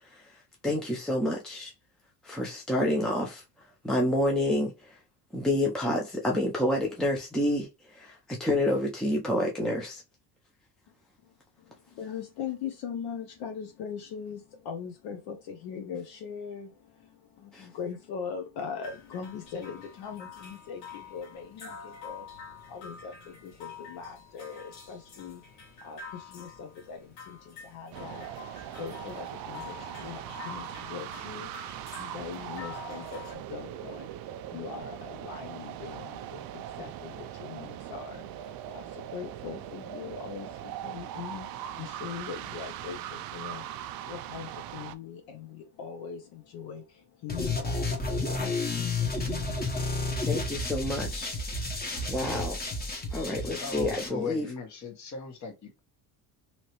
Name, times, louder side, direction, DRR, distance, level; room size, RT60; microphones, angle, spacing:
voice 1, 0.6-1.7 2.2-3.4 3.8-4.9 5.3-10.0 17.5-17.7 50.3-51.3 51.7-52.6 53.1-54.5, left 1 dB, ahead, 0.5 m, -29 dB
voice 2, 11.2-22.3 22.7-50.5, left 7 dB, 65° left, 0.7 m, -41 dB
sound 1, 18.8-33.3, left 6 dB, 85° left, 1.4 m, -47 dB
sound 2, 27.9-44.9, right 11 dB, 55° right, 0.5 m, -40 dB
sound 3, 47.3-54.1, left 2 dB, 20° left, 1.0 m, -31 dB
voice 3, 53.6-55.8, left 5 dB, 40° left, 1.2 m, -37 dB
2.9 x 2.8 x 3.0 m
supercardioid pair, 100°, 42 cm